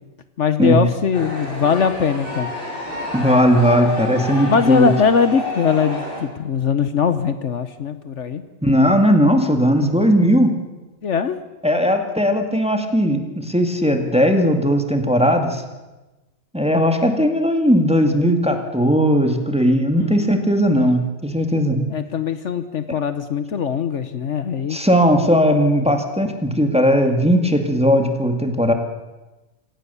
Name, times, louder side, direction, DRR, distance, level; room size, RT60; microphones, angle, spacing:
voice 1, 0.4-2.5 4.5-8.4 11.0-11.4 19.9-20.4 21.9-24.8, left 6 dB, 65° left, 11 dB, 1.2 m, -21 dB
sound 1, 1.1-6.2, left 1 dB, 40° left, 7.3 m, -29 dB
voice 2, 3.1-4.9 8.6-10.6 11.6-15.6 16.5-21.9 24.7-28.7, equal, 5° right, 5 dB, 2.0 m, -17 dB
25.5 x 17.5 x 7.0 m, 1.1 s
omnidirectional pair, 1.4 m